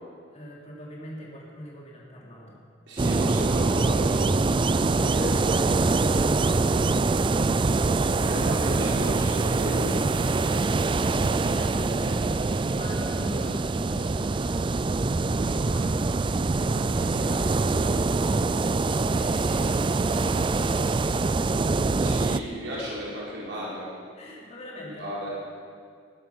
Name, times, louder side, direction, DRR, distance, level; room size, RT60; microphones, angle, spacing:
voice 1, 0.3-2.6 10.3-14.7 15.0-20.8 24.1-25.1, equal, 35° left, -3 dB, 3.2 m, -42 dB
voice 2, 2.9-4.3 4.7-5.6 8.3-9.9 13.3-13.5 22.0-23.9 24.8-25.3, equal, 70° right, -6 dB, 4.4 m, -34 dB
sound 1, 3.0-22.4, right 3 dB, 25° right, 0.4 m, -24 dB
20.0 x 11.5 x 5.9 m, 2.1 s
head